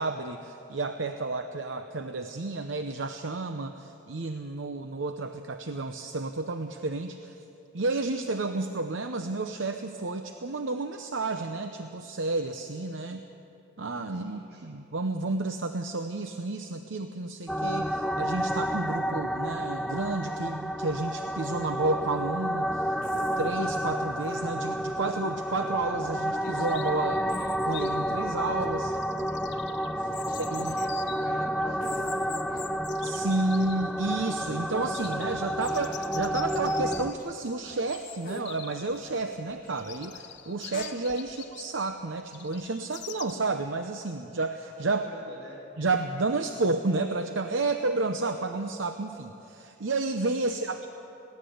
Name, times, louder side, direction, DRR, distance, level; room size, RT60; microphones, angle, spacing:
voice 1, 0.0-7.3 7.7-13.2 13.8-27.3 27.6-28.9 30.0-30.1 30.4-30.7 33.0-45.0 45.8-50.9, right 3 dB, 80° right, 7 dB, 0.8 m, -31 dB
voice 2, 14.1-14.8 30.0-32.7 41.3-41.4 44.9-45.6 50.6-50.7, right 1 dB, 60° right, -2 dB, 6.4 m, -51 dB
sound 1, 17.5-37.1, equal, ahead, 0.5 m, -30 dB
sound 2, 23.0-23.6 24.2-25.8 26.2-27.9 28.1-29.6 30.2-32.6 33.1-38.0 38.3-38.5 38.8-40.1 40.7-40.9, left 2 dB, 45° left, 1.3 m, -48 dB
Chirp tweet, 26.7-43.3, left 11 dB, 60° left, 1.0 m, -46 dB
21.5 x 16.5 x 7.9 m, 3.0 s
head